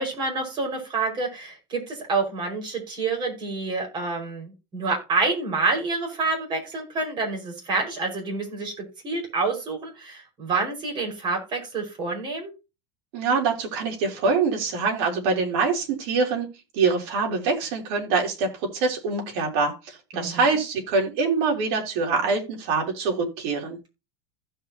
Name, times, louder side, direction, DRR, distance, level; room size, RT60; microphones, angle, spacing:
voice 1, 0.0-12.5 20.1-20.4, right 3 dB, 30° right, 1 dB, 5.4 m, -28 dB
voice 2, 13.1-16.5 16.7-23.8, right 4 dB, 65° right, 2 dB, 3.6 m, -24 dB
16.0 x 5.7 x 2.9 m, 0.28 s
supercardioid pair, 140°, 14 cm